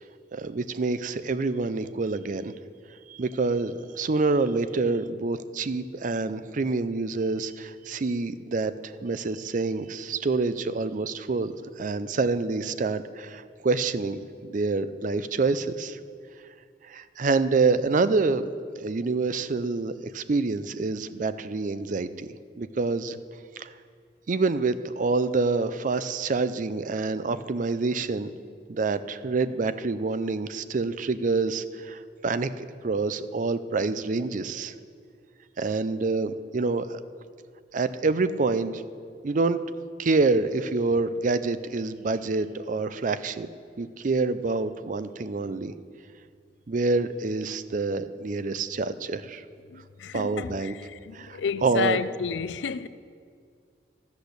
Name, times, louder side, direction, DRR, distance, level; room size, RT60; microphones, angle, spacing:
voice 1, 0.3-2.5 3.1-16.0 16.8-18.4 18.8-22.3 22.6-23.2 23.6-23.7 24.3-28.3 28.7-34.7 35.6-37.0 37.7-38.8 39.2-39.6 40.0-43.5 43.8-45.7 46.7-49.4 50.1-50.8 51.1-52.0, right 3 dB, 45° right, 0.5 m, -27 dB
voice 2, 49.7-50.7 51.1-52.9, left 6 dB, 90° left, 0.4 m, -30 dB
13.5 x 8.2 x 6.7 m
head